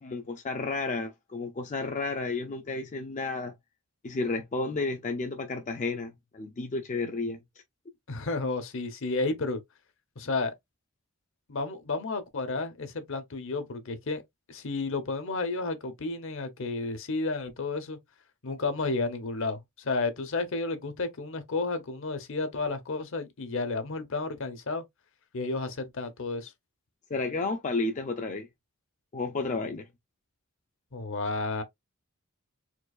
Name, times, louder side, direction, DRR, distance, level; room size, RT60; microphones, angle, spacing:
voice 1, 0.0-3.5 4.0-7.4 27.1-28.5 29.1-29.9, left 3 dB, 35° left, 0.4 m, -32 dB
voice 2, 8.1-9.6 10.2-10.5 11.5-14.2 14.5-18.0 18.4-24.8 25.3-26.5 30.9-31.6, left 3 dB, 60° left, 0.8 m, -32 dB
4.5 x 2.4 x 2.3 m
head